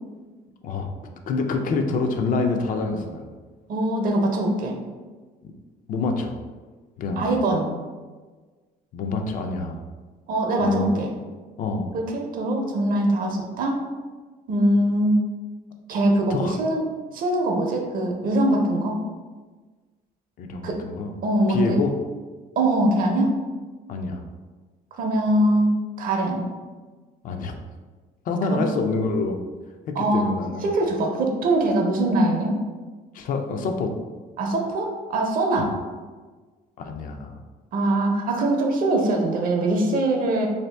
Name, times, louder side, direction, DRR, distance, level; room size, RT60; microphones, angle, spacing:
voice 1, 0.6-3.3 5.4-5.5 5.9-6.4 7.0-7.3 8.9-9.8 10.6-10.9 11.6-11.9 16.3-16.6 20.4-21.1 21.5-21.9 23.9-24.2 27.2-27.5 28.3-29.4 29.9-30.7 33.1-33.9 35.6-35.7 36.8-37.4, left 4 dB, 55° left, 5 dB, 0.4 m, -26 dB
voice 2, 3.7-4.8 7.2-7.7 10.3-11.1 11.9-13.8 14.5-15.3 15.9-16.8 17.1-19.1 20.6-20.8 21.2-21.8 22.6-23.4 25.0-26.5 28.5-28.7 30.0-30.4 30.6-32.6 34.4-35.8 37.7-40.5, right 1 dB, 55° right, 2 dB, 0.6 m, -22 dB
2.7 x 2.5 x 3.2 m, 1.4 s
cardioid pair, 110°, 17 cm